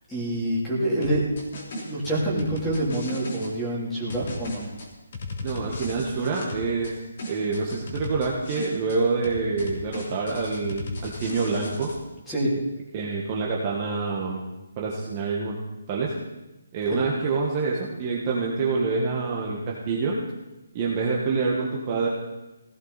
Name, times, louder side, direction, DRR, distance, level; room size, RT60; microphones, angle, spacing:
voice 1, 0.1-1.2 1.7-4.6 12.3-12.5, right 1 dB, 5° left, -7 dB, 3.1 m, -26 dB
sound 1, 1.0-3.5 4.1-6.9 7.2-9.0 9.2-12.0, left 1 dB, 40° left, 3.1 m, -36 dB
voice 2, 5.4-7.0 7.3-11.9 12.9-14.4 14.8-15.6 15.9-16.1 16.7-20.2 20.7-22.1, right 4 dB, 20° right, -3 dB, 1.4 m, -26 dB
18.5 x 16.5 x 4.1 m, 1.0 s
hypercardioid pair, 175°, 0 cm